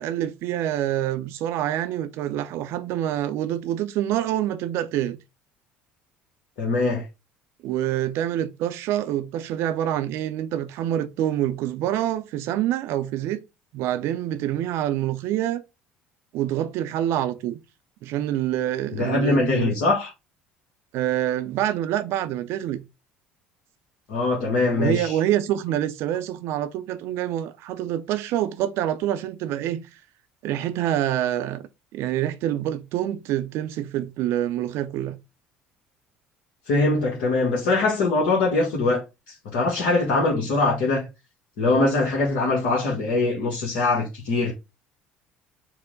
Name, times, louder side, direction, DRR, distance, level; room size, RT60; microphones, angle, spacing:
voice 1, 0.0-5.2 7.6-13.4 13.7-15.6 16.3-17.6 18.0-19.7 20.9-22.8 24.8-29.8 30.4-31.6 31.9-35.2, right 12 dB, 65° right, 0.5 m, -26 dB
voice 2, 6.6-7.1 18.9-20.1 24.1-25.2 36.7-41.1 41.6-44.5, left 3 dB, 70° left, 1.0 m, -22 dB
4.5 x 2.1 x 3.8 m
hypercardioid pair, 65°, 5 cm